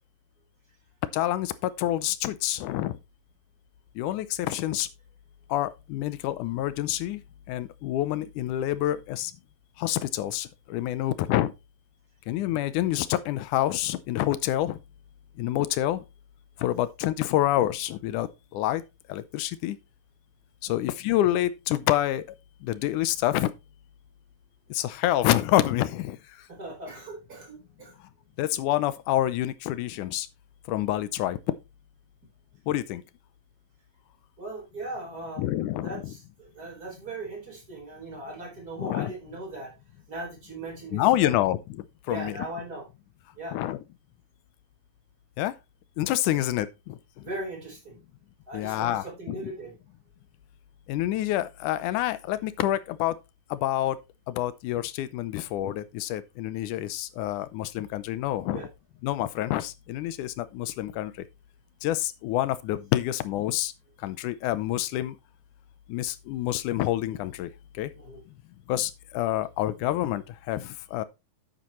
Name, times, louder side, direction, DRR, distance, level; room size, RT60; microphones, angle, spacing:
voice 1, 1.1-3.0 4.0-4.9 5.5-7.2 7.5-9.3 9.8-11.5 12.3-14.8 15.4-16.0 16.6-18.8 19.1-19.8 20.6-22.2 22.6-23.5 24.7-26.2 28.4-30.3 30.7-31.5 32.7-33.0 35.4-36.1 38.8-39.1 40.9-42.4 43.5-43.8 45.4-45.5 46.0-47.0 48.5-49.4 50.9-53.1 53.5-54.0 54.3-58.7 59.0-61.1 61.8-63.7 64.0-65.2 65.9-67.5 67.8-67.9 68.7-71.0, left 14 dB, 75° left, 1.9 m, -27 dB
voice 2, 26.5-27.9 34.4-35.5 35.8-39.7 40.1-41.4 42.1-42.8 43.4-43.5 47.2-48.0 48.5-49.7 58.5-58.7 67.9-68.2, right 2 dB, 25° right, 4.7 m, -39 dB
10.5 x 8.7 x 3.1 m
omnidirectional pair, 4.1 m